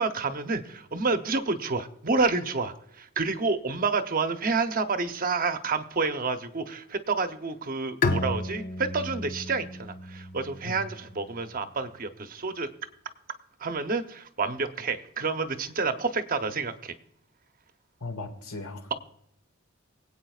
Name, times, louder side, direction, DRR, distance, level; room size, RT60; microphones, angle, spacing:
voice 1, 0.0-12.7 13.6-16.9, right 4 dB, 40° right, 8 dB, 0.8 m, -29 dB
Bowed string instrument, 8.0-11.5, left 2 dB, 40° left, 0.6 m, -32 dB
voice 2, 18.0-18.9, left 3 dB, 80° left, 5 dB, 2.0 m, -37 dB
24.0 x 8.6 x 2.4 m, 0.73 s
head